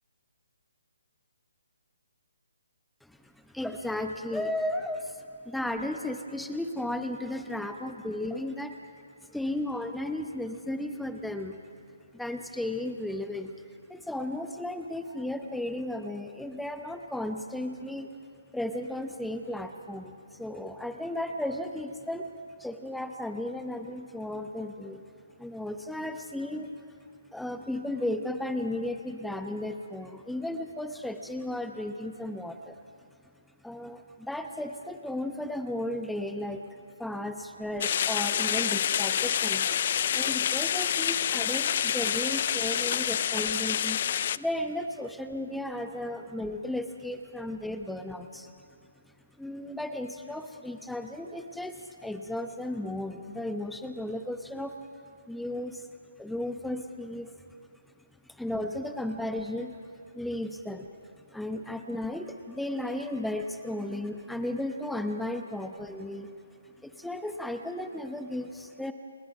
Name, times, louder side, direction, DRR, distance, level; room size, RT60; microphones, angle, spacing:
voice 1, 3.0-5.1 5.4-8.8 9.3-11.6 12.1-13.5 13.9-18.1 18.5-22.3 22.6-25.0 25.4-26.8 27.3-32.8 33.6-39.8 40.1-44.0 44.3-48.5 49.0-54.7 55.2-55.9 56.2-57.3 58.3-59.8 60.1-60.9 61.3-66.3 66.6-68.9, left 1 dB, ahead, 6 dB, 0.9 m, -34 dB
sound 1, 37.8-44.4, left 9 dB, 45° left, 0.5 m, -27 dB
29.5 x 20.0 x 5.7 m, 2.3 s
figure-of-eight pair, 145°, 0 cm